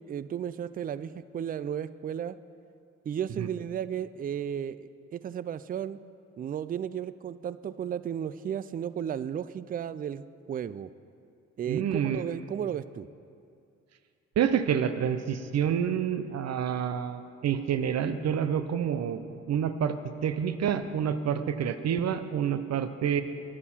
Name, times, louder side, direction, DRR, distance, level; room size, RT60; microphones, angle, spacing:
voice 1, 0.0-2.4 3.1-6.0 6.4-10.9 11.6-13.1, right 9 dB, 30° right, 15 dB, 0.4 m, -34 dB
voice 2, 11.7-12.2 14.4-20.0 20.2-23.2, right 8 dB, 60° right, 11 dB, 0.7 m, -28 dB
9.7 x 8.8 x 5.7 m, 2.4 s
supercardioid pair, 55°, 29 cm